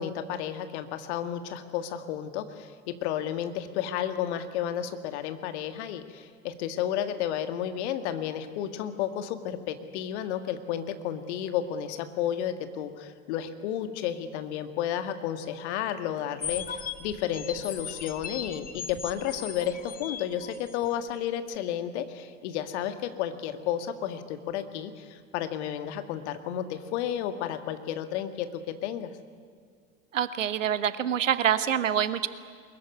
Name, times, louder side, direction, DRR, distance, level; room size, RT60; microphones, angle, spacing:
voice 1, 0.0-29.1, left 10 dB, 60° left, 9 dB, 2.0 m, -32 dB
sound 1, 16.4-20.9, left 7 dB, 20° left, 1.5 m, -38 dB
voice 2, 30.1-32.3, right 9 dB, 75° right, 13 dB, 1.3 m, -26 dB
23.0 x 21.5 x 9.5 m, 2.2 s
figure-of-eight pair, 80°, 39 cm